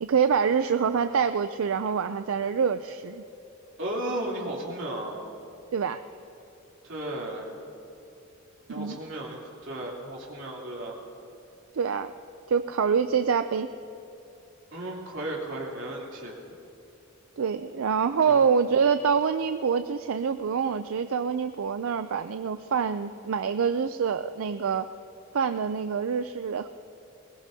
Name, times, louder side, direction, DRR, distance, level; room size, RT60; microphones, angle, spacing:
voice 1, 0.0-3.2 5.7-6.0 8.8-9.0 11.7-12.1 12.5-13.7 17.4-24.9 25.3-26.7, right 6 dB, 85° right, 10 dB, 0.4 m, -26 dB
voice 2, 3.8-5.2 6.9-7.5 8.7-11.0 14.7-16.4 18.3-18.4, right 1 dB, 65° right, -3 dB, 3.1 m, -34 dB
21.5 x 20.0 x 2.8 m, 2.9 s
head